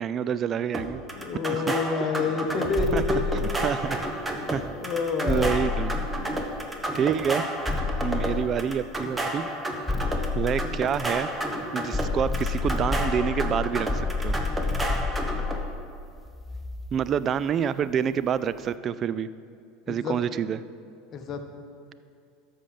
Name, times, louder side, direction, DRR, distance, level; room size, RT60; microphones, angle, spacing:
voice 1, 0.0-1.0 1.5-1.8 2.9-3.2 3.6-4.0 4.5-4.6 5.3-5.9 6.9-7.5 8.0-9.5 10.4-11.3 11.7-14.4 16.9-19.3 19.9-20.6, right 8 dB, 35° right, 15 dB, 0.3 m, -27 dB
sound 1, 0.7-15.6, right 1 dB, 15° right, 1.2 m, -31 dB
voice 2, 1.2-3.7 4.8-5.7 19.9-20.2 21.1-21.4, left 4 dB, 40° left, 6 dB, 1.0 m, -28 dB
sound 2, 2.8-4.3 5.3-6.9 7.7-9.0 9.9-11.5 11.9-17.2, left 4 dB, 15° left, 0.6 m, -30 dB
13.5 x 5.7 x 5.2 m, 2.4 s
figure-of-eight pair, 75°, 0 cm